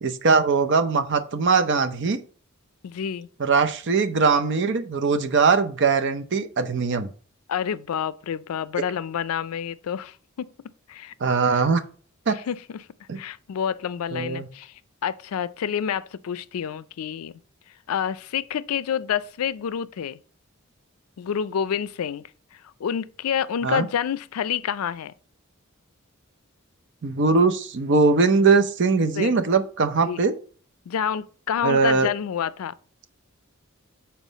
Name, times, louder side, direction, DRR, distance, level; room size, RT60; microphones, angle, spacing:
voice 1, 0.0-2.2 3.4-7.1 11.2-11.8 12.3-12.4 13.1-13.2 14.1-14.5 23.6-23.9 27.0-30.3 31.6-32.1, right 4 dB, 55° right, 0.6 m, -21 dB
voice 2, 2.8-3.3 7.5-10.5 10.9-11.1 11.5-11.7 12.3-12.9 13.2-14.7 15.0-17.3 17.9-20.2 21.2-22.3 22.6-25.1 29.1-29.4 30.0-30.2 30.9-32.7, left 8 dB, 80° left, 0.4 m, -28 dB
7.3 x 4.4 x 4.0 m
head